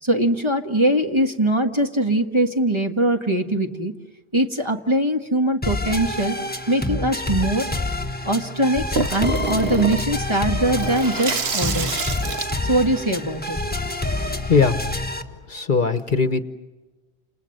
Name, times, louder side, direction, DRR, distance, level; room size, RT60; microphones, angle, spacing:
voice 1, 0.0-3.9 4.3-6.4 6.7-7.7 8.2-12.0 12.6-13.6, right 1 dB, 25° right, 4 dB, 1.6 m, -22 dB
sound 1, 5.6-15.2, left 2 dB, 10° left, 1.4 m, -27 dB
Water tap faucet / Sink (filling or washing), 9.0-14.2, right 4 dB, 70° right, 1.5 m, -28 dB
voice 2, 14.1-15.0 15.3-16.4, left 5 dB, 50° left, 11 dB, 1.2 m, -21 dB
30.0 x 28.0 x 6.6 m, 1.2 s
omnidirectional pair, 1.1 m